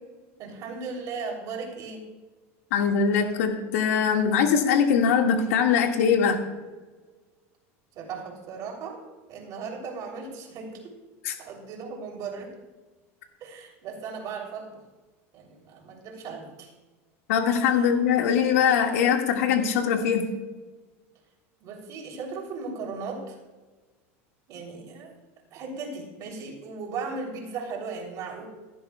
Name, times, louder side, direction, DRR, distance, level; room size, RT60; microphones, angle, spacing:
voice 1, 0.4-2.1 7.9-9.0 9.3-10.9 11.4-12.6 13.4-14.8 15.3-16.7 21.6-23.4 24.5-25.1 25.5-28.5, right 4 dB, 50° right, 1 dB, 3.2 m, -37 dB
voice 2, 2.7-6.4 11.2-11.3 17.3-20.2, left 7 dB, 80° left, 2 dB, 1.9 m, -22 dB
16.0 x 11.5 x 2.3 m, 1.3 s
supercardioid pair, 110°, 8 cm